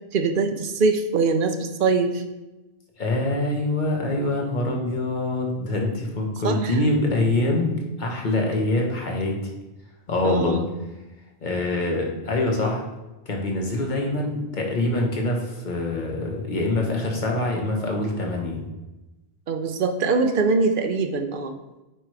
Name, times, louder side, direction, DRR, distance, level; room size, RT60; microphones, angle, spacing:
voice 1, 0.1-2.2 6.4-6.8 10.2-10.7 19.5-21.5, right 4 dB, 60° right, 6 dB, 0.8 m, -23 dB
voice 2, 3.0-9.4 10.1-10.6 11.4-12.8 13.3-18.6, left 2 dB, 50° left, 0 dB, 1.4 m, -24 dB
8.7 x 3.1 x 4.7 m, 1.1 s
omnidirectional pair, 1.1 m